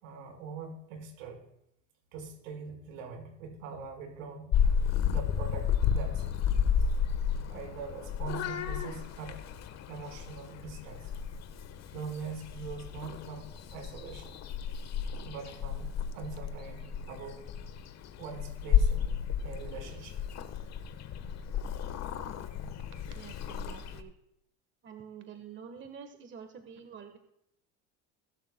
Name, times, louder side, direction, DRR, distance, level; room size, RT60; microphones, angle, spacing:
voice 1, 0.0-1.4 2.1-4.5 5.1-6.3 7.5-9.4 9.9-11.1 11.9-14.4 15.2-17.4 18.2-20.2, right 5 dB, 85° right, 2 dB, 4.6 m, -43 dB
Purr / Meow, 4.5-24.0, left 7 dB, 45° left, 1.2 m, -32 dB
voice 2, 23.1-24.1 24.8-27.2, right 7 dB, 30° right, 7 dB, 1.3 m, -47 dB
21.5 x 11.5 x 2.2 m, 0.78 s
supercardioid pair, 110°, 38 cm